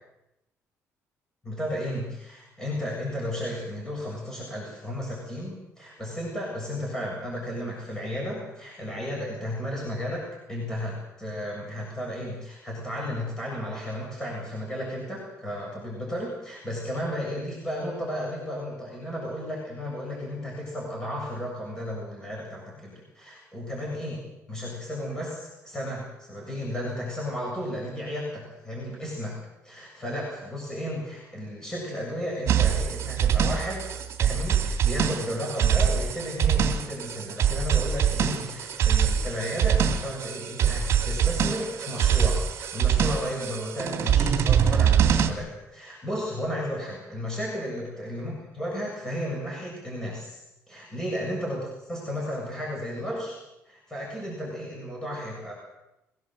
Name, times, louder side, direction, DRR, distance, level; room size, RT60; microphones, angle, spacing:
voice 1, 1.4-29.4 29.6-33.8 34.2-50.4 50.7-51.6 51.9-53.4 53.7-55.5, equal, 10° left, -3 dB, 7.3 m, -33 dB
sound 1, 32.5-45.3, right 8 dB, 55° right, 2.8 m, -24 dB
23.0 x 18.0 x 7.9 m, 0.89 s
cardioid pair, 145°, 5 cm